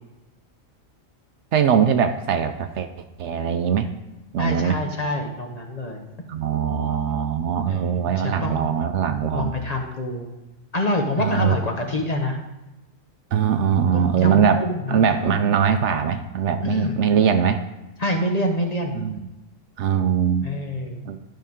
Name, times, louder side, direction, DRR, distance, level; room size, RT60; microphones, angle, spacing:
voice 1, 1.5-2.9 3.2-3.9 4.3-4.8 6.3-9.5 11.2-11.5 13.3-14.6 14.9-17.6 18.9-19.2 19.8-20.4 21.0-21.2, right 7 dB, 70° right, 8 dB, 0.8 m, -21 dB
voice 2, 4.4-6.0 7.7-8.6 9.3-10.3 10.7-12.4 13.7-15.4 16.6-16.9 18.0-19.0 20.4-21.0, left 1 dB, 35° left, 2 dB, 0.8 m, -26 dB
12.0 x 5.7 x 3.6 m, 1.0 s
omnidirectional pair, 1.4 m